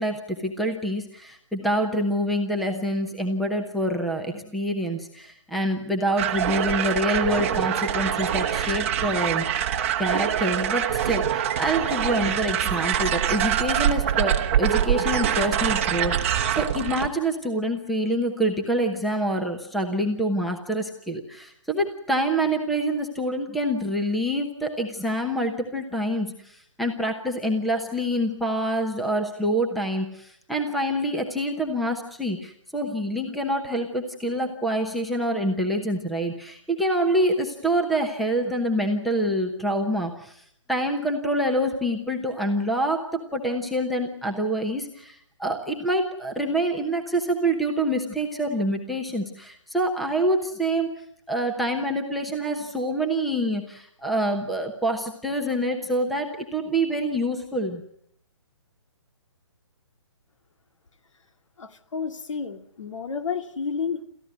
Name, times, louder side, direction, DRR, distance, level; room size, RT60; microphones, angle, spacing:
voice 1, 0.0-40.4 40.7-50.9 51.3-57.8, right 1 dB, ahead, 3 dB, 1.0 m, -26 dB
sound 1, 6.2-17.1, right 10 dB, 25° right, 1.1 m, -24 dB
voice 2, 61.6-64.0, left 6 dB, 75° left, 8 dB, 2.3 m, -31 dB
28.0 x 14.5 x 9.5 m, 0.72 s
hypercardioid pair, 170°, 16 cm